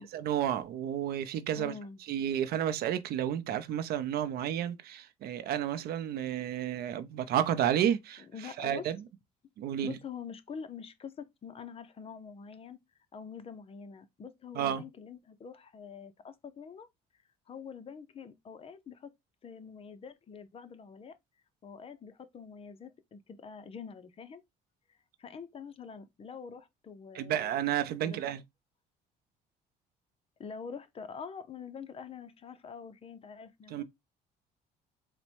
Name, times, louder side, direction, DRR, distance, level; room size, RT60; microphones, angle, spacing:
voice 1, 0.0-1.7 2.1-9.0 9.6-10.0 14.5-14.8 27.1-28.4 33.7-33.8, right 10 dB, 65° right, 0.6 m, -31 dB
voice 2, 1.5-2.0 8.3-8.8 9.8-12.8 13.1-16.9 17.5-19.1 19.4-21.2 21.6-24.4 24.9-27.6 28.0-28.4 30.4-33.8, left 6 dB, 35° left, 0.6 m, -45 dB
4.1 x 2.2 x 4.3 m
cardioid pair, 110°, 17 cm